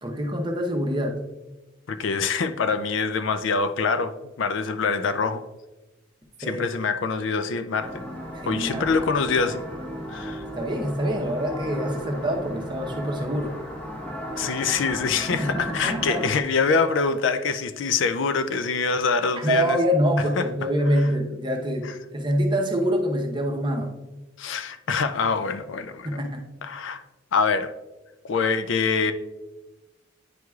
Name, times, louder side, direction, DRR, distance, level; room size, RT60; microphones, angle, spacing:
voice 1, 0.0-1.2 6.4-6.6 8.3-8.9 10.5-13.5 15.3-16.2 19.4-23.9 26.0-26.4, equal, 25° right, 2 dB, 0.8 m, -25 dB
voice 2, 1.9-5.4 6.5-7.9 8.5-9.6 10.1-10.4 14.4-19.8 20.4-20.5 24.4-26.2 26.6-27.0 27.3-27.7 28.2-29.1, left 5 dB, 65° left, 10 dB, 0.4 m, -25 dB
sound 1, 7.8-16.4, equal, 5° left, 0.9 m, -35 dB
9.3 x 4.7 x 2.3 m, 1.1 s
head